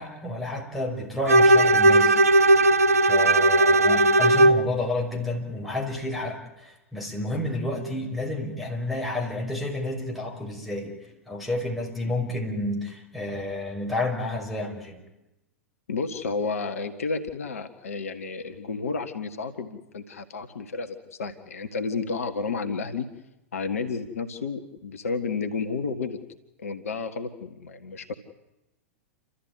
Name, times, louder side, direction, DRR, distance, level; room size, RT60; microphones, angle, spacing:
voice 1, 0.0-2.7 3.1-11.0 11.3-15.0, left 1 dB, ahead, -2 dB, 5.3 m, -30 dB
Bowed string instrument, 1.3-4.7, right 2 dB, 85° right, 0.9 m, -17 dB
voice 2, 15.9-23.1 23.5-26.2 26.6-28.1, left 4 dB, 70° left, 8 dB, 1.6 m, -31 dB
29.0 x 13.5 x 9.4 m, 0.98 s
figure-of-eight pair, 95°, 8 cm